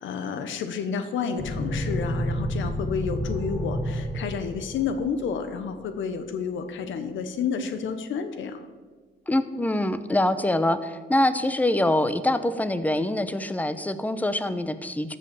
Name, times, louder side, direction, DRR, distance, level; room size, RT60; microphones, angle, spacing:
voice 1, 0.0-8.6, left 6 dB, 75° left, 9 dB, 1.0 m, -30 dB
sound 1, 1.4-5.5, equal, 35° left, 2.0 m, -30 dB
voice 2, 9.3-15.2, left 1 dB, 10° left, 11 dB, 0.8 m, -24 dB
14.0 x 5.5 x 7.0 m, 1.4 s
cardioid pair, 90°, 20 cm